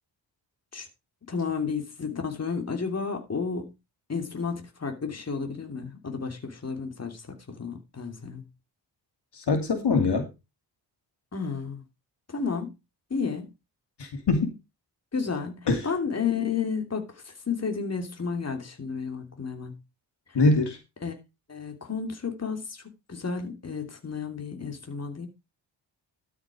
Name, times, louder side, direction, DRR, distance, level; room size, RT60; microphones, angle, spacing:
voice 1, 1.3-3.7 4.1-7.2 7.5-8.4 11.3-11.8 12.3-12.7 13.1-13.5 15.1-19.7 21.0-21.1 21.5-22.8 23.1-25.3, left 5 dB, 35° left, 3.0 m, -32 dB
voice 2, 9.4-10.3 14.0-14.5 15.7-15.8 20.3-20.8, left 3 dB, 60° left, 2.7 m, -23 dB
13.0 x 6.7 x 4.9 m
wide cardioid pair, 105°, 46 cm